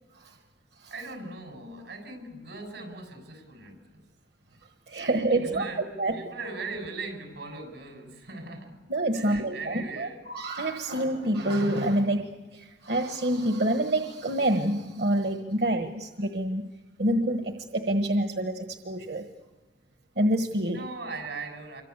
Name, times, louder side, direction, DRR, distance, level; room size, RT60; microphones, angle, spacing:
voice 1, 0.9-4.0 5.0-8.8 9.1-10.2 20.7-21.8, right 3 dB, 85° right, 4 dB, 6.9 m, -39 dB
voice 2, 4.9-5.7 6.0-6.3 8.9-16.7 17.0-19.3 20.2-20.8, right 1 dB, 65° right, 5 dB, 1.4 m, -27 dB
26.5 x 24.5 x 8.3 m, 1.2 s
head